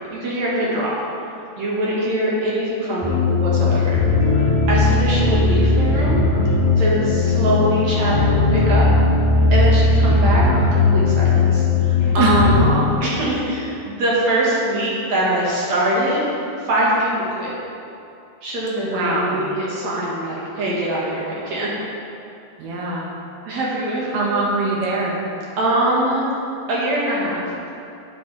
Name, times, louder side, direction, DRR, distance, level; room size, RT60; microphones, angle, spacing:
voice 1, 0.1-0.9 1.6-4.0 4.7-6.2 6.7-8.8 9.5-10.4 10.7-12.5 13.0-16.2 16.6-17.1 17.4-17.5 18.4-21.7 23.5-24.4 25.6-26.3 26.7-27.4, right 1 dB, 55° right, -6 dB, 2.5 m, -22 dB
sound 1, 3.0-12.7, left 3 dB, 35° left, 1.5 m, -17 dB
voice 2, 12.2-12.9 18.8-19.4 22.6-23.1 24.1-25.2, right 2 dB, 80° right, -3 dB, 3.2 m, -22 dB
11.5 x 7.9 x 3.3 m, 2.7 s
omnidirectional pair, 4.3 m